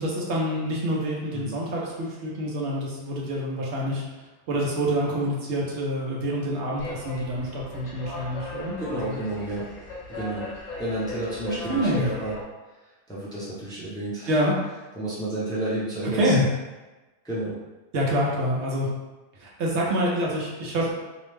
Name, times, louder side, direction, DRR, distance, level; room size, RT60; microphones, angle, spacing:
voice 1, 0.0-4.0 4.5-9.2 11.7-12.1 14.3-14.6 16.1-16.5 17.9-18.9 19.4-20.9, equal, 80° right, -3 dB, 1.0 m, -26 dB
sound 1, 6.8-12.4, left 2 dB, 45° left, 0.7 m, -38 dB
voice 2, 8.8-9.7 10.1-10.5 10.8-12.3 13.1-14.4 15.0-16.3 17.2-17.6, right 1 dB, 5° left, -8 dB, 0.5 m, -31 dB
2.8 x 2.1 x 3.2 m, 1.1 s
omnidirectional pair, 1.1 m